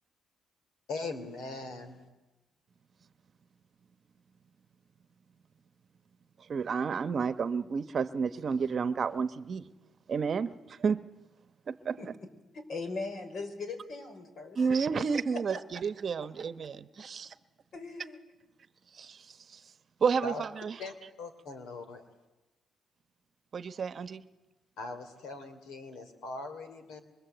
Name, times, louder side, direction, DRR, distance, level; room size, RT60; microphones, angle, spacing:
voice 1, 0.9-2.0 20.2-20.4 20.8-22.0 24.8-27.0, left 3 dB, 80° left, 9 dB, 3.0 m, -40 dB
voice 2, 6.5-9.7 10.1-11.1 11.7-12.0 14.6-17.3 18.9-19.6 20.0-20.8 23.5-24.2, right 5 dB, 50° right, 13 dB, 1.0 m, -31 dB
voice 3, 12.5-14.6 15.3-15.4 15.7-15.8 16.2-16.3 17.7-18.2, left 3 dB, 60° left, 6 dB, 5.1 m, -39 dB
24.0 x 24.0 x 8.0 m, 1.1 s
cardioid pair, 90°, 0 cm